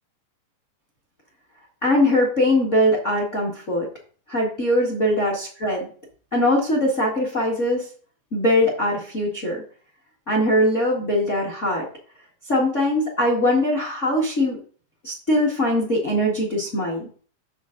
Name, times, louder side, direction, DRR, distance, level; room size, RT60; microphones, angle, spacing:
voice 1, 1.8-3.9 4.3-5.9 6.3-7.9 8.3-9.6 10.3-11.8 12.5-14.6 15.0-17.1, left 1 dB, 40° left, -3 dB, 1.0 m, -21 dB
6.8 x 6.3 x 3.8 m, 0.43 s
omnidirectional pair, 3.9 m